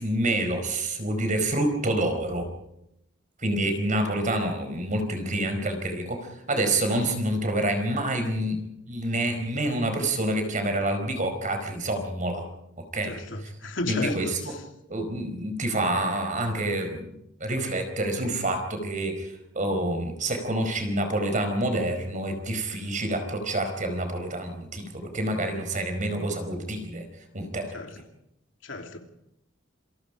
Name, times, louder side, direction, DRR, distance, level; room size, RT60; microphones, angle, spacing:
voice 1, 0.0-2.5 3.4-8.6 8.9-12.4 12.8-13.5 13.9-14.6 14.9-27.1 27.3-28.0, right 1 dB, 40° right, 4.8 m, -28 dB
voice 2, 13.1-14.3 27.7-28.0 28.6-29.0, left 2 dB, 85° left, 2.9 m, -33 dB
27.5 x 23.0 x 5.0 m
head